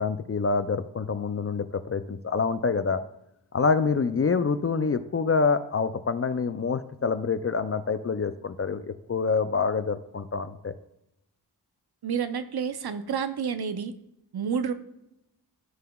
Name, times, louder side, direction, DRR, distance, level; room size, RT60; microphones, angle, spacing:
voice 1, 0.0-3.0 3.5-10.7, left 5 dB, 35° left, 11 dB, 0.4 m, -26 dB
voice 2, 12.0-13.9 14.3-14.7, right 7 dB, 65° right, 10 dB, 0.7 m, -29 dB
12.5 x 5.6 x 2.3 m, 0.84 s
wide cardioid pair, 110°, 41 cm